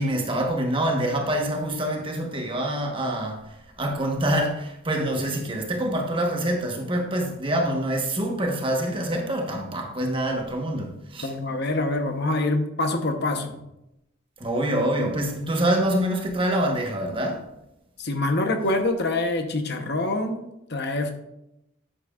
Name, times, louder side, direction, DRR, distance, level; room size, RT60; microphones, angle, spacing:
voice 1, 0.0-11.3 14.4-17.5, right 1 dB, 25° right, 1.1 m, -26 dB
voice 2, 11.2-13.6 18.0-20.4 20.7-21.1, left 2 dB, 50° left, 0.9 m, -25 dB
10.0 x 7.7 x 2.4 m
head